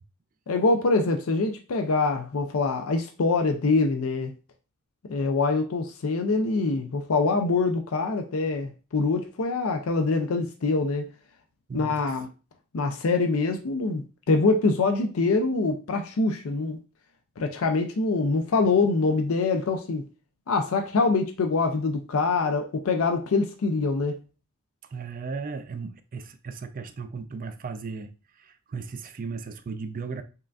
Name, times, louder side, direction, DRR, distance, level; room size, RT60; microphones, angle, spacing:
voice 1, 0.5-4.3 5.1-11.1 11.7-12.3 12.7-16.8 17.4-20.0 20.5-24.2, left 3 dB, 65° left, 0.5 m, -24 dB
voice 2, 11.7-12.0 24.9-28.1 28.4-30.2, right 4 dB, 40° right, 0.4 m, -36 dB
5.5 x 2.5 x 2.3 m
head